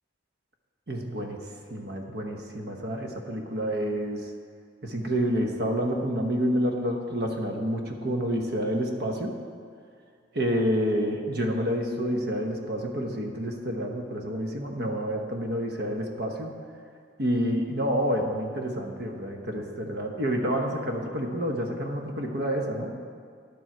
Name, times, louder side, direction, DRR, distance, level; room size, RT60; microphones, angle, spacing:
voice 1, 0.9-1.4 1.7-4.3 4.8-9.4 10.3-16.6 17.2-22.9, equal, 55° right, 3 dB, 1.0 m, -28 dB
11.0 x 7.5 x 4.5 m, 2.2 s
head